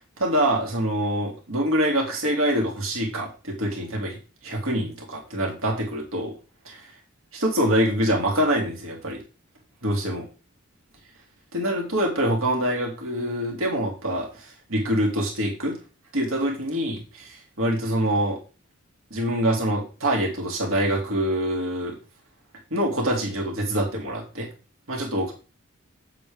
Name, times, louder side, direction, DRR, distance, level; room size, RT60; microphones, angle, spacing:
voice 1, 0.0-4.2 4.4-6.3 6.6-6.8 7.3-9.2 9.8-10.3 11.5-15.8 16.1-18.4 19.1-22.0 22.7-24.5 24.9-25.3, right 1 dB, 85° right, 0 dB, 2.8 m, -25 dB
8.7 x 7.7 x 3.6 m, 0.34 s
head